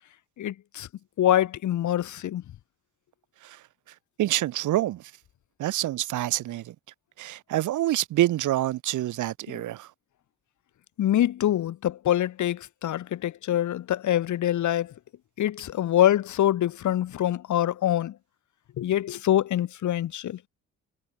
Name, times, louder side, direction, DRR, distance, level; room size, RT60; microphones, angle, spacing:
voice 1, 0.4-0.9 1.2-2.4 11.0-14.9 15.4-18.2 18.8-20.4, left 12 dB, 75° left, 4.0 m, -25 dB
voice 2, 4.2-5.0 5.6-6.7 7.2-9.9, right 14 dB, 80° right, 1.6 m, -26 dB
cardioid pair, 90°, 30 cm